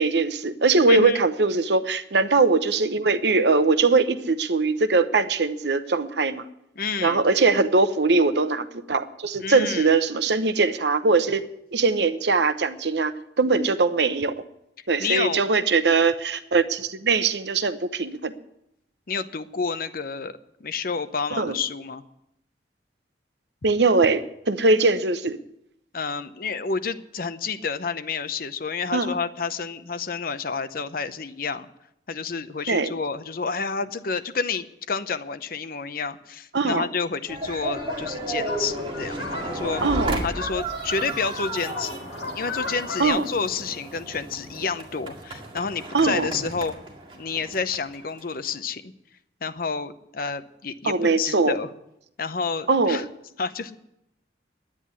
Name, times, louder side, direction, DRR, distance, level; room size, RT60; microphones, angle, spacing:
voice 1, 0.0-6.4 7.0-11.4 11.7-14.3 14.9-18.3 21.4-21.6 23.6-25.4 28.9-29.1 32.7-32.9 36.5-36.9 39.8-40.2 43.0-43.3 45.9-46.3 50.8-51.6 52.7-53.0, right 3 dB, 75° right, 11 dB, 0.9 m, -21 dB
voice 2, 0.9-1.2 6.8-7.2 9.4-9.9 15.0-15.4 19.1-22.0 25.9-31.7 32.1-39.8 40.2-42.1 42.3-46.8 47.1-48.9 49.4-51.7 52.2-53.1 53.4-53.8, left 5 dB, 55° left, 12 dB, 0.8 m, -29 dB
sound 1, 37.3-48.6, right 1 dB, 30° right, 2.1 m, -33 dB
sound 2, 37.6-43.0, left 3 dB, 70° left, 2.4 m, -37 dB
10.0 x 9.8 x 9.7 m, 0.81 s
head